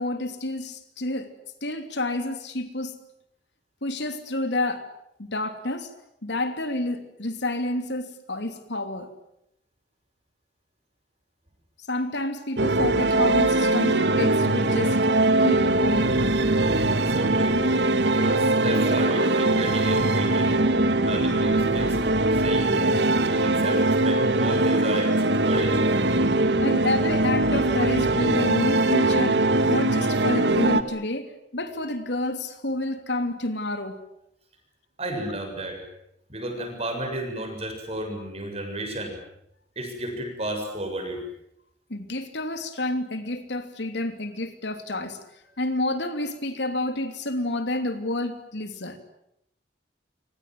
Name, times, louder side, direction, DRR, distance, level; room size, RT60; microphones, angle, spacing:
voice 1, 0.0-1.3 1.6-2.9 3.8-4.9 5.2-5.9 6.2-9.1 11.9-15.0 15.4-16.2 26.6-34.0 41.9-45.2 45.6-49.0, left 2 dB, 75° left, 8 dB, 3.1 m, -29 dB
sound 1, 12.6-30.8, right 2 dB, 75° right, 1.7 m, -21 dB
voice 2, 17.0-17.6 18.1-20.5 21.0-22.0 22.3-23.0 23.2-25.8 35.0-35.8 36.3-39.2 39.8-41.2, right 1 dB, 35° right, 4 dB, 7.2 m, -32 dB
28.0 x 24.5 x 7.8 m, 0.78 s
head